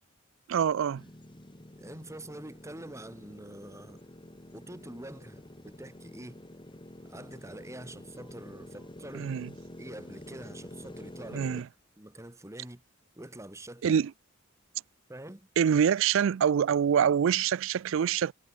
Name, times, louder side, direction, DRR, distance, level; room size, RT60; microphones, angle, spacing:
voice 1, 0.5-1.0 9.1-9.5 11.3-11.7 13.8-14.1 15.6-18.3, right 8 dB, 65° right, 0.3 m, -25 dB
sound 1, 0.9-11.6, left 1 dB, 25° left, 1.7 m, -48 dB
voice 2, 1.8-4.0 4.5-6.4 7.0-9.3 9.8-11.5 12.0-12.8 13.1-14.0 15.1-15.5, right 1 dB, 15° right, 1.6 m, -45 dB
head